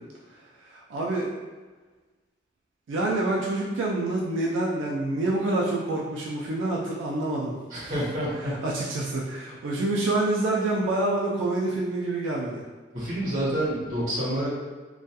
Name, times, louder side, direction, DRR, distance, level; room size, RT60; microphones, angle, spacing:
voice 1, 0.6-1.3 2.9-7.5 7.8-7.9 8.6-12.6, right 2 dB, 80° right, -3 dB, 0.3 m, -27 dB
voice 2, 7.7-8.6 12.9-14.5, right 1 dB, 40° right, -7 dB, 0.8 m, -28 dB
2.3 x 2.2 x 2.7 m, 1.3 s
head